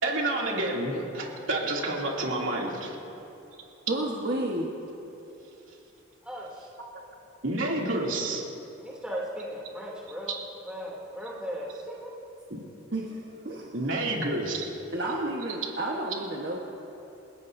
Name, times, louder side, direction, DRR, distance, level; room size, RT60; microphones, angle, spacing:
voice 1, 0.0-3.0 7.4-8.4 10.3-10.4 13.7-14.6, right 2 dB, 80° right, -3 dB, 2.9 m, -29 dB
voice 2, 3.9-4.7 12.9-13.9 14.9-16.6, right 1 dB, 55° right, -3 dB, 1.4 m, -31 dB
voice 3, 6.2-6.7 8.8-10.3 10.7-12.1, equal, 5° right, -5 dB, 3.0 m, -37 dB
29.5 x 16.0 x 2.7 m, 2.9 s
head